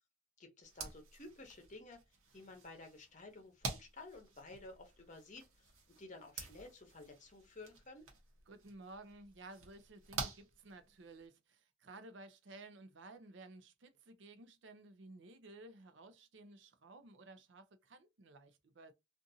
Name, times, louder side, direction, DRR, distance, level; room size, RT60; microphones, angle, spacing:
voice 1, 0.4-2.0 2.3-8.0, left 2 dB, 35° left, 0.8 m, -53 dB
sound 1, 0.6-11.3, right 4 dB, 80° right, 1.0 m, -49 dB
voice 2, 8.5-18.9, right 2 dB, 60° right, 0.6 m, -55 dB
2.5 x 2.5 x 2.6 m
head